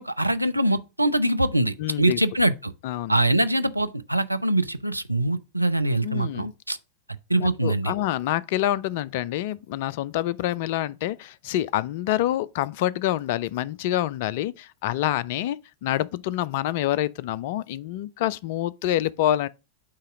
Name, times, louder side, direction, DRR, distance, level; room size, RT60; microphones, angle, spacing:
voice 1, 0.0-2.7 3.1-6.8 7.3-7.9, right 1 dB, 85° right, 0.4 m, -23 dB
voice 2, 1.8-2.2 2.8-3.2 6.0-6.5 7.3-19.5, left 13 dB, 50° left, 0.4 m, -27 dB
8.4 x 2.8 x 6.0 m
figure-of-eight pair, 90°, 0 cm